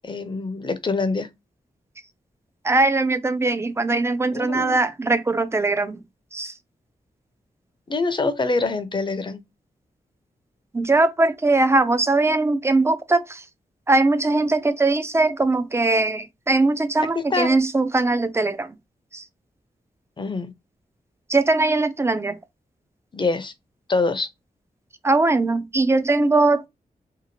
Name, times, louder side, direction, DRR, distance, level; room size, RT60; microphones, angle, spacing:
voice 1, 0.0-1.3 4.3-4.8 7.9-9.4 17.2-17.6 20.2-20.5 23.1-23.5 23.9-24.3, left 3 dB, 30° left, 0.6 m, -25 dB
voice 2, 2.6-6.0 6.3-6.5 10.7-13.4 13.9-18.8 19.1-19.2 21.3-22.4 25.0-26.7, right 2 dB, 15° right, 0.5 m, -20 dB
2.8 x 2.4 x 2.8 m
cardioid pair, 60°, 16 cm